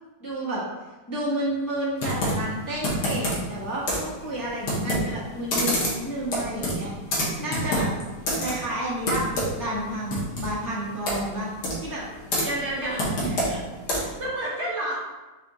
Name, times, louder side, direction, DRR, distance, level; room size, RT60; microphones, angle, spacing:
voice 1, 0.2-0.6 1.1-7.9 8.4-9.3 9.6-11.5 11.8-12.0 12.8-12.9 13.2-13.6, right 1 dB, 20° left, -8 dB, 0.6 m, -31 dB
Computer keyboard, 2.0-14.3, equal, 85° left, 1.6 m, -29 dB
voice 2, 12.4-13.0 13.4-13.6 14.0-14.9, right 1 dB, 55° right, -6 dB, 0.9 m, -30 dB
4.2 x 3.6 x 2.9 m, 1.2 s
omnidirectional pair, 1.7 m